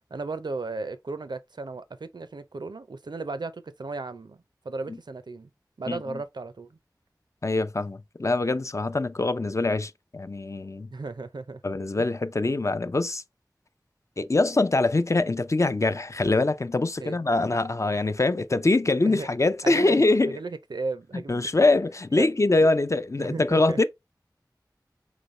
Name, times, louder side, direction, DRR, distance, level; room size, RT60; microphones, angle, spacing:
voice 1, 0.1-5.5 5.8-6.8 10.9-11.6 12.0-12.1 17.0-17.2 19.0-19.3 19.6-19.9 20.3-21.7 22.1-22.3 22.6-22.7 23.2-23.8, right 3 dB, 80° right, 0.5 m, -35 dB
voice 2, 5.9-6.2 7.4-10.9 11.6-13.2 14.2-20.4 21.3-23.8, left 2 dB, 45° left, 0.4 m, -24 dB
4.0 x 3.0 x 3.1 m
wide cardioid pair, 45°, 7 cm